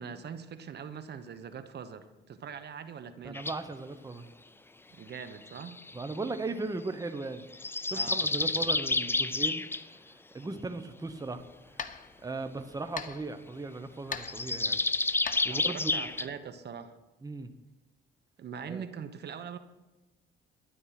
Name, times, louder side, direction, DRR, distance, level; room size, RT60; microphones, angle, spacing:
voice 1, 0.0-3.5 4.9-5.8 7.9-8.3 15.5-17.0 18.4-19.6, right 7 dB, 55° right, 10 dB, 1.1 m, -42 dB
voice 2, 3.2-4.3 5.9-7.5 7.9-9.6 10.3-11.4 11.7-11.8 12.2-14.8 15.4-15.9 17.2-17.5 18.7-18.9, right 3 dB, 20° right, 8 dB, 1.0 m, -37 dB
sound 1, 3.3-3.6 5.1-6.4 7.5-9.8 14.2-16.3, left 3 dB, 10° left, 0.5 m, -30 dB
sound 2, 11.1-16.3, left 6 dB, 40° left, 0.9 m, -44 dB
12.5 x 9.9 x 5.9 m, 1.1 s
cardioid pair, 90°, 20 cm